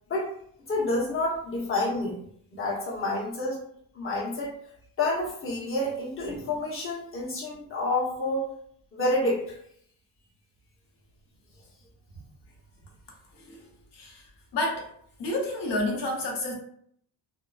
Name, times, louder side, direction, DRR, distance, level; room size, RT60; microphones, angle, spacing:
voice 1, 0.7-2.2 2.5-3.6 3.9-4.5 5.0-8.4 8.9-9.6, left 2 dB, 30° left, -4 dB, 0.9 m, -28 dB
voice 2, 14.5-14.9 15.2-16.5, left 1 dB, 65° left, 0 dB, 0.9 m, -29 dB
2.8 x 2.0 x 2.3 m, 0.65 s
cardioid pair, 115°, 44 cm